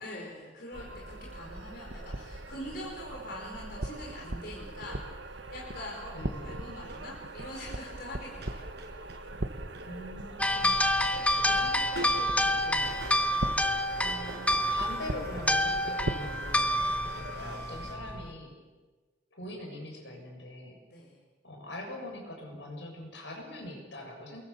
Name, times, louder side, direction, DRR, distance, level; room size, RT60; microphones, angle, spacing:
voice 1, 0.0-8.9 13.3-13.6 20.9-21.2, left 1 dB, 55° left, -2 dB, 5.0 m, -44 dB
sound 1, 0.7-17.6, right 2 dB, 85° right, 1.6 m, -40 dB
voice 2, 6.1-6.5 9.8-10.8 11.3-13.5 14.0-18.6 19.3-20.8 21.4-24.4, left 1 dB, 75° left, 2 dB, 7.2 m, -43 dB
sound 2, 6.8-17.9, right 1 dB, 60° right, 6.1 m, -47 dB
sound 3, 10.4-18.3, left 1 dB, 5° left, 1.0 m, -28 dB
28.0 x 22.0 x 7.1 m, 1.3 s
head